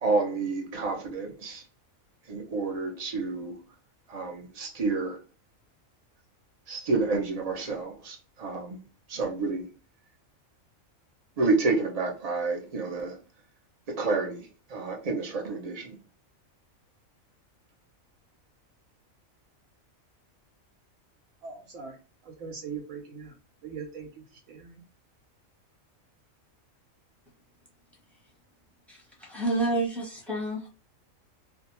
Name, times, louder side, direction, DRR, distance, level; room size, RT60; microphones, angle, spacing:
voice 1, 0.0-1.6 2.3-3.6 4.1-5.2 6.7-8.8 9.1-9.7 11.4-13.2 13.9-15.9, right 3 dB, 50° right, 0.4 m, -29 dB
voice 2, 21.4-22.0 22.2-23.3 23.6-24.8, right 6 dB, 80° right, 1.0 m, -41 dB
voice 3, 28.9-30.7, right 2 dB, ahead, 0.7 m, -29 dB
2.6 x 2.2 x 2.9 m
omnidirectional pair, 1.4 m